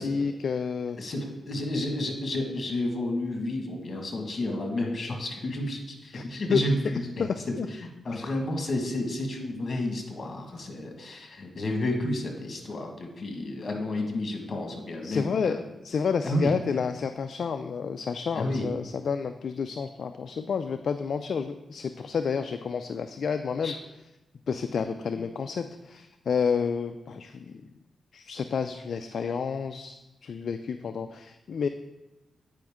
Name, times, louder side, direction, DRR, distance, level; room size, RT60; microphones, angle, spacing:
voice 1, 0.0-1.0 6.1-6.2 6.5-6.6 7.2-7.3 7.6-7.7 8.1-8.3 15.0-23.7 24.5-27.6 28.1-31.7, left 6 dB, 65° left, 8 dB, 0.3 m, -30 dB
voice 2, 1.0-6.8 7.2-7.5 8.0-15.5 16.2-16.6 18.3-18.7 23.6-23.8, left 1 dB, 50° left, 3 dB, 1.5 m, -31 dB
9.0 x 5.0 x 3.6 m, 1.0 s
cardioid pair, 70°, 0 cm